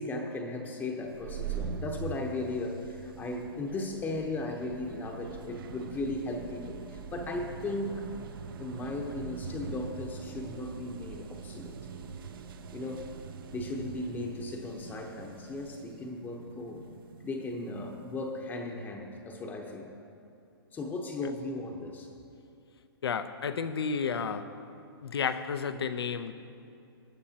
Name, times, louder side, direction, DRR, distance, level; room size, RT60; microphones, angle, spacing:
voice 1, 0.0-8.0 8.6-11.8 12.7-13.1 13.5-16.8 17.2-19.9 20.7-22.1, left 2 dB, 15° left, 2 dB, 0.9 m, -36 dB
sound 1, 1.0-18.4, right 6 dB, 60° right, 0.8 m, -43 dB
voice 2, 23.0-24.6 25.0-26.3, left 6 dB, 75° left, 11 dB, 0.8 m, -32 dB
19.5 x 10.5 x 2.9 m, 2.6 s
hypercardioid pair, 140°, 13 cm